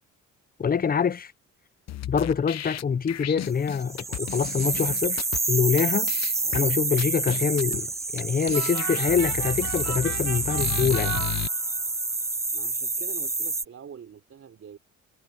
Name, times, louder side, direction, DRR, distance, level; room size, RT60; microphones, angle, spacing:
voice 1, 0.6-1.3 2.1-6.1 6.5-11.2, left 6 dB, 30° left, 0.8 m, -25 dB
sound 1, 1.9-5.4 5.8-5.9 6.1-6.6 7.0-7.8 8.2-8.3 8.5-11.5, left 12 dB, 60° left, 0.9 m, -34 dB
sound 2, 3.8-13.6, right 3 dB, 10° right, 0.3 m, -28 dB
sound 3, 8.5-12.0, right 10 dB, 65° right, 2.2 m, -37 dB
voice 2, 12.5-14.8, right 7 dB, 50° right, 4.0 m, -45 dB
cardioid pair, 90°, 30 cm